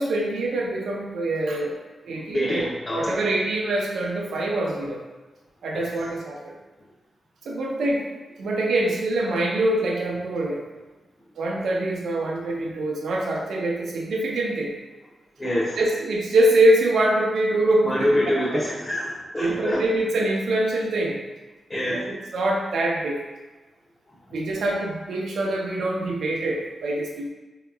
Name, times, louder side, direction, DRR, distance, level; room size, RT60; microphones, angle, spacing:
voice 1, 0.0-2.7 2.9-5.0 5.6-6.5 7.4-8.0 8.4-10.6 11.4-14.7 15.8-18.2 18.5-18.6 19.4-21.2 21.9-23.2 24.3-27.3, right 1 dB, 80° right, -1 dB, 0.6 m, -24 dB
voice 2, 2.3-3.2 5.7-5.9 15.4-15.8 17.9-19.8 21.7-22.1, equal, 25° left, -6 dB, 0.6 m, -25 dB
3.9 x 2.8 x 2.3 m, 1.2 s
cardioid pair, 65°, 0 cm